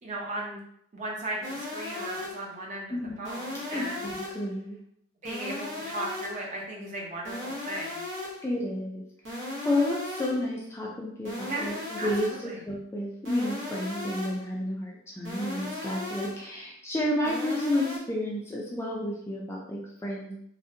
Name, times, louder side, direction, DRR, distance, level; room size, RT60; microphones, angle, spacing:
voice 1, 0.0-0.6 0.9-4.1 5.2-8.0 11.5-12.6, right 1 dB, 40° right, -3 dB, 0.6 m, -36 dB
sound 1, 1.4-2.5 3.2-4.5 5.2-6.5 7.2-8.5 9.2-10.5 11.2-12.5 13.2-14.5 15.2-16.5 17.2-18.0, left 2 dB, 80° right, 0.8 m, -37 dB
voice 2, 2.9-3.2 3.7-4.8 8.4-9.0 9.3-9.4 9.6-20.3, left 1 dB, 15° left, -3 dB, 0.3 m, -31 dB
2.6 x 2.0 x 2.6 m, 0.70 s
head